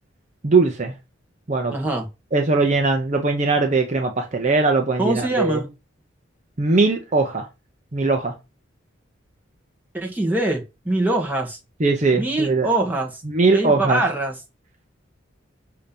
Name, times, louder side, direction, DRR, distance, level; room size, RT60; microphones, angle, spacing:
voice 1, 0.4-0.9 1.5-1.7 2.3-5.6 6.6-7.5 7.9-8.3 11.8-12.7 13.3-14.0, right 3 dB, 40° right, 0.8 m, -20 dB
voice 2, 1.7-2.1 5.0-5.7 9.9-11.6 12.2-13.2 13.5-14.3, right 2 dB, 10° right, 1.4 m, -23 dB
6.5 x 2.9 x 5.2 m
head